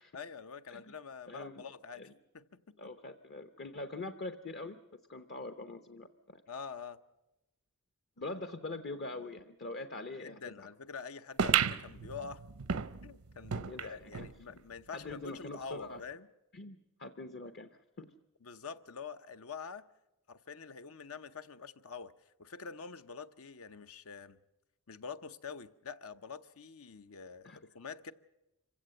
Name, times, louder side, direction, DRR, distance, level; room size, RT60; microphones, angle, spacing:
voice 1, 0.1-2.9 6.5-7.0 10.2-12.4 13.0-16.3 18.4-19.8 20.3-22.1 22.4-24.4 24.9-28.1, left 5 dB, 80° left, 0.8 m, -46 dB
voice 2, 1.3-1.6 1.9-2.1 2.8-6.4 8.2-10.7 13.5-14.3 14.9-16.0 16.5-17.7 18.0-18.1 27.4-27.6, left 2 dB, 50° left, 0.8 m, -43 dB
sound 1, 11.4-14.3 14.8-14.9 15.1-15.2 16.0-16.1, right 8 dB, 80° right, 0.7 m, -33 dB
26.0 x 16.0 x 7.8 m
head